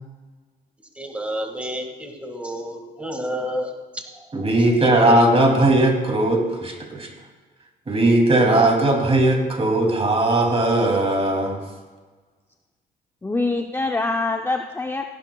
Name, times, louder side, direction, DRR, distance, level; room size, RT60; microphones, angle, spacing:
voice 1, 1.0-4.2 5.0-5.1, equal, 5° right, 3 dB, 1.9 m, -30 dB
voice 2, 4.3-7.1 7.9-11.6, right 1 dB, 30° right, 2 dB, 2.6 m, -18 dB
voice 3, 13.2-15.1, left 3 dB, 10° left, 4 dB, 0.6 m, -24 dB
16.0 x 11.5 x 2.3 m, 1.4 s
cardioid pair, 90°, 20 cm